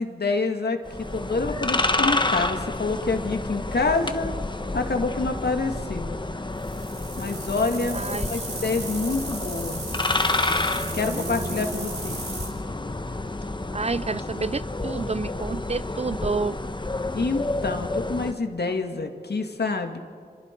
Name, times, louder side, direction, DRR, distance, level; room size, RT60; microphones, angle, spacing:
voice 1, 0.0-4.4 4.7-6.1 7.2-9.8 10.9-12.2 17.1-20.0, left 3 dB, 70° left, 5 dB, 2.0 m, -27 dB
sound 1, 0.8-18.3, left 2 dB, 25° left, 1.1 m, -29 dB
sound 2, 6.5-12.5, right 3 dB, 90° right, 4.6 m, -37 dB
voice 2, 7.9-8.3 11.0-12.0 13.7-16.6, right 4 dB, 35° right, 17 dB, 0.5 m, -30 dB
29.5 x 26.5 x 4.6 m, 2.2 s
cardioid pair, 50°, 18 cm